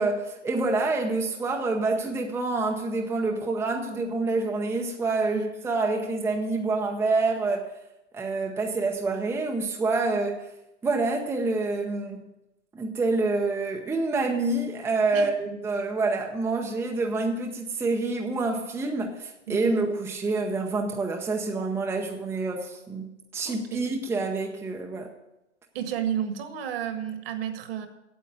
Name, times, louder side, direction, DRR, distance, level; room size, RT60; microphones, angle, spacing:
voice 1, 0.0-7.7 8.1-10.4 10.8-12.2 12.7-25.1, right 3 dB, 5° right, 0.7 m, -27 dB
voice 2, 19.5-19.8 23.4-23.8 25.7-27.9, right 9 dB, 55° right, 1.7 m, -32 dB
8.7 x 8.0 x 8.1 m
hypercardioid pair, 125°, 36 cm